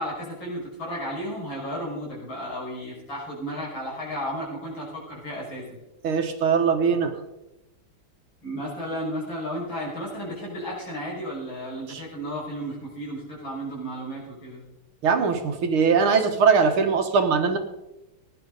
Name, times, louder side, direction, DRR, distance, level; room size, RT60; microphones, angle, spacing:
voice 1, 0.0-5.8 8.4-14.6, equal, 65° left, -5 dB, 6.8 m, -33 dB
voice 2, 6.0-7.1 11.9-12.0 15.0-17.6, right 5 dB, 80° right, 6 dB, 2.2 m, -21 dB
18.0 x 10.5 x 4.1 m, 0.94 s
omnidirectional pair, 2.3 m